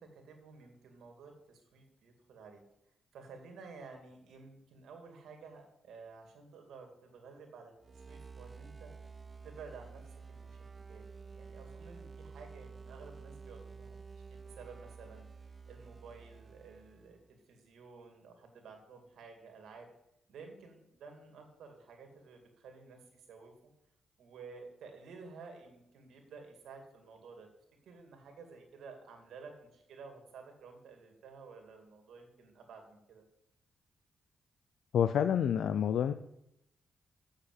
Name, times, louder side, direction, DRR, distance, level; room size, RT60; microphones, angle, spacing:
voice 1, 0.0-2.6 3.1-8.9 9.4-19.9 20.3-23.5 24.2-27.5 27.8-33.2, right 4 dB, 80° right, 4 dB, 2.3 m, -53 dB
sound 1, 7.8-17.3, right 5 dB, 30° right, 0.5 m, -51 dB
voice 2, 34.9-36.1, left 8 dB, 80° left, 12 dB, 0.4 m, -28 dB
8.0 x 6.7 x 7.5 m, 0.80 s
cardioid pair, 70°, 0 cm